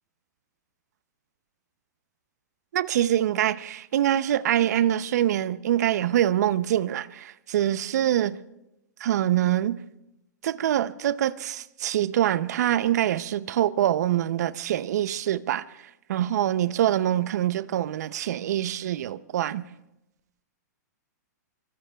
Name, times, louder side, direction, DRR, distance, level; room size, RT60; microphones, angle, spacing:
voice 1, 2.7-8.4 9.0-9.8 10.4-15.6 16.1-19.6, right 11 dB, 65° right, 0.6 m, -24 dB
24.5 x 24.0 x 2.3 m
hypercardioid pair, 140°, 10 cm